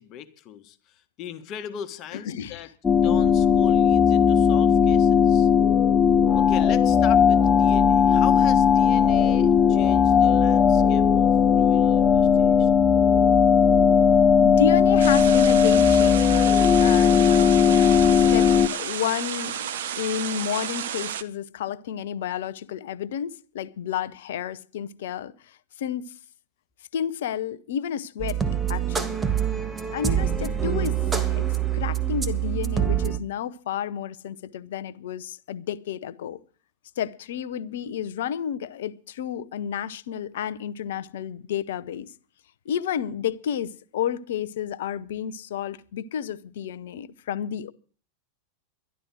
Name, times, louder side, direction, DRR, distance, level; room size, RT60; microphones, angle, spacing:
voice 1, 0.0-2.7 3.0-5.5 6.3-11.3 11.5-12.7, left 10 dB, 35° left, 1.5 m, -39 dB
voice 2, 2.1-2.7 14.4-16.5 16.8-19.7 20.0-26.2 26.9-28.4 28.7-29.2 29.9-31.4 31.7-36.4 37.0-42.1 42.6-47.7, left 9 dB, 60° left, 0.9 m, -31 dB
sound 1, 2.8-18.7, left 7 dB, 15° left, 0.7 m, -18 dB
sound 2, 15.0-21.2, right 9 dB, 60° right, 1.1 m, -32 dB
sound 3, 28.2-33.2, right 9 dB, 15° right, 1.6 m, -25 dB
12.5 x 12.0 x 6.3 m
figure-of-eight pair, 90°, 0 cm